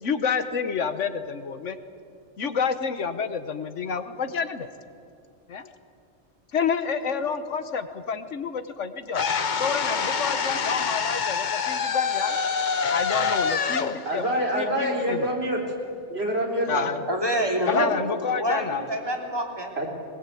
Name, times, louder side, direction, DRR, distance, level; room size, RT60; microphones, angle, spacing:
voice 1, 0.0-1.8 2.4-4.7 5.5-5.7 6.5-9.2 9.6-12.4 12.9-15.3 16.7-17.0 17.7-18.8, left 6 dB, 85° left, 10 dB, 1.5 m, -29 dB
sound 1, 9.1-15.2, left 6 dB, 45° left, 0.9 m, -26 dB
voice 2, 14.0-15.6 16.1-16.9 19.8-19.9, right 1 dB, 60° right, 0 dB, 4.2 m, -26 dB
voice 3, 17.1-19.7, right 1 dB, 20° right, 1 dB, 3.2 m, -27 dB
21.0 x 21.0 x 8.5 m, 2.4 s
omnidirectional pair, 1.2 m